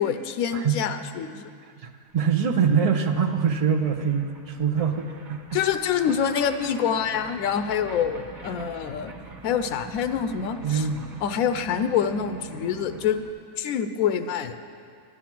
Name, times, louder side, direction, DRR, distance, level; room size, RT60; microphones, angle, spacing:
voice 1, 0.0-1.4 5.5-9.1 9.4-10.9 11.2-13.2 13.6-14.5, left 8 dB, 90° left, 9 dB, 1.0 m, -26 dB
voice 2, 0.5-0.8 1.8-5.6 10.6-11.1, right 6 dB, 40° right, 4 dB, 0.6 m, -24 dB
sound 1, 2.2-2.3 2.4-13.3, right 4 dB, 80° right, 1.5 m, -44 dB
11.0 x 9.9 x 5.9 m, 2.3 s
omnidirectional pair, 1.4 m